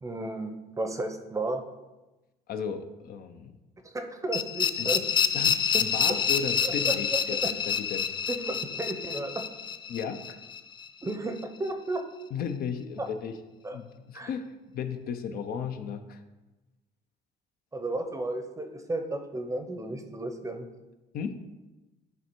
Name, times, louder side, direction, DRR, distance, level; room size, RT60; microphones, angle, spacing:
voice 1, 0.0-1.6 3.8-5.0 6.6-7.2 8.3-9.4 11.0-12.0 13.0-13.1 13.6-13.8 14.1-14.3 17.7-20.7, right 2 dB, 20° right, 6 dB, 0.7 m, -33 dB
voice 2, 2.5-3.6 4.8-4.9 5.3-7.4 7.7-8.2 9.9-10.4 12.3-13.4 13.7-14.5 14.7-16.2 21.1-21.4, left 7 dB, 65° left, 8 dB, 0.6 m, -35 dB
sound 1, 4.3-11.1, left 7 dB, 25° left, 0.3 m, -28 dB
9.2 x 3.4 x 4.5 m, 1.1 s
cardioid pair, 110°, 17 cm